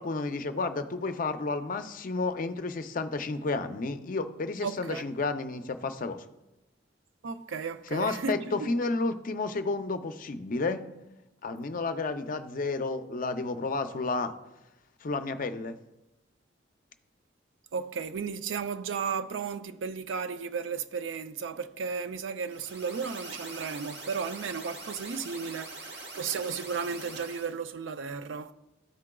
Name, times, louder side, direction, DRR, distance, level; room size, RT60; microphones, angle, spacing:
voice 1, 0.0-6.2 7.9-10.8 11.4-14.3 15.0-15.8, left 3 dB, 45° left, 0.5 m, -31 dB
voice 2, 4.6-5.1 7.2-8.7 17.7-28.5, right 5 dB, 80° right, 0.4 m, -34 dB
sound 1, 22.4-27.5, right 2 dB, 65° right, 1.4 m, -43 dB
13.5 x 4.8 x 2.3 m
head